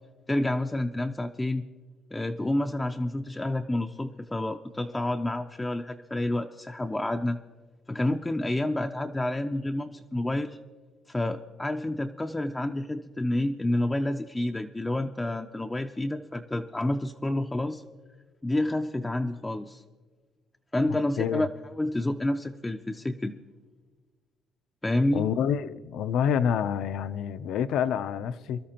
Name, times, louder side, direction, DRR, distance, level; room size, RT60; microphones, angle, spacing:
voice 1, 0.3-1.6 2.1-7.4 7.9-10.6 11.1-17.8 18.4-19.8 20.7-23.4 24.8-25.3, left 1 dB, 10° left, 4 dB, 0.4 m, -29 dB
voice 2, 20.9-21.4 25.1-28.6, left 8 dB, 70° left, 13 dB, 0.5 m, -28 dB
24.0 x 12.5 x 2.9 m, 1.4 s
cardioid pair, 140°, 0 cm